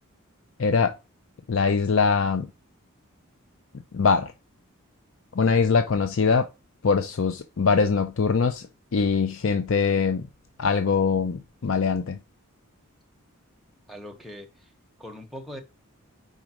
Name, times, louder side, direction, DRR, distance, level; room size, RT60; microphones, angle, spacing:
voice 1, 0.6-1.0 1.5-2.5 3.9-4.3 5.3-6.5 6.8-8.7 8.9-10.3 10.6-12.2, left 5 dB, 65° left, 0.5 m, -22 dB
voice 2, 13.9-14.7 15.0-15.6, left 1 dB, ahead, 1.0 m, -41 dB
5.2 x 3.9 x 5.9 m
head